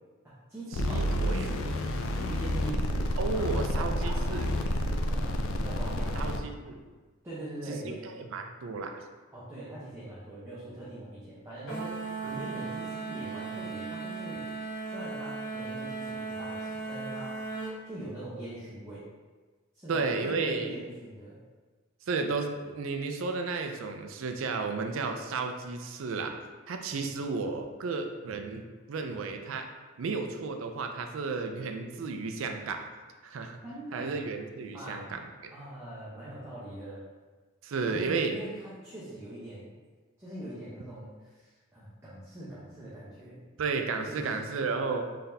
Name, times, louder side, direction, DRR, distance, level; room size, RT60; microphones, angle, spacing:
voice 1, 0.2-1.7 2.1-6.4 7.2-8.1 9.3-14.5 14.8-17.4 17.8-19.0 19.7-21.4 33.6-34.2 34.7-35.1 35.5-37.0 37.8-39.7 40.2-43.4 44.1-44.5, right 1 dB, 15° right, -10 dB, 0.8 m, -42 dB
sound 1, 0.7-6.4, left 1 dB, 85° left, 0.4 m, -29 dB
voice 2, 0.8-1.5 3.2-4.5 6.2-6.7 7.7-9.0 12.2-12.3 19.9-20.7 22.1-26.3 26.7-28.6 28.9-29.7 30.0-32.8 33.2-33.6 33.9-35.5 37.6-38.3 43.6-45.0, right 4 dB, 75° right, 5 dB, 0.4 m, -33 dB
sound 2, 11.7-17.8, right 4 dB, 60° left, 0.9 m, -37 dB
3.9 x 3.3 x 2.7 m, 1.3 s
head